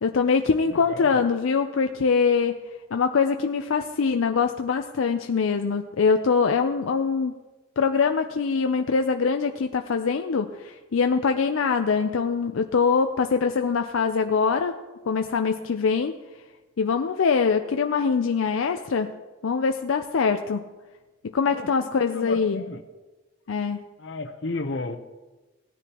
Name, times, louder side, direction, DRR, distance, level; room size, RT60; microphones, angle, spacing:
voice 1, 0.0-2.6 2.9-7.3 7.8-14.7 15.1-16.1 16.8-19.1 19.4-20.6 21.3-22.6 23.5-23.8, left 5 dB, 85° left, 6 dB, 0.5 m, -23 dB
voice 2, 0.7-1.2 21.5-21.7 22.0-22.8 24.0-25.0, left 3 dB, 60° left, 7 dB, 0.8 m, -33 dB
17.5 x 9.9 x 2.9 m, 1.2 s
head